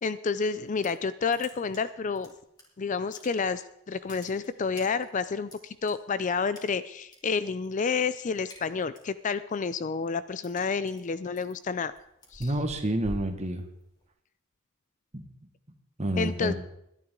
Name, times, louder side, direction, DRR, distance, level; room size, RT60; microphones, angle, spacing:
voice 1, 0.0-2.3 2.8-11.9 12.3-12.5 16.2-16.5, left 5 dB, 35° left, 14 dB, 0.4 m, -30 dB
sound 1, 0.6-1.0 1.3-2.6 2.9-3.6 3.9-5.9 6.5-7.2 7.5-7.8 8.1-9.2 9.6-14.1, equal, 20° left, 3.3 m, -47 dB
voice 2, 12.4-13.7 15.1-15.3 16.0-16.5, right 1 dB, 30° right, 5 dB, 1.6 m, -29 dB
21.0 x 11.0 x 3.8 m, 0.80 s
head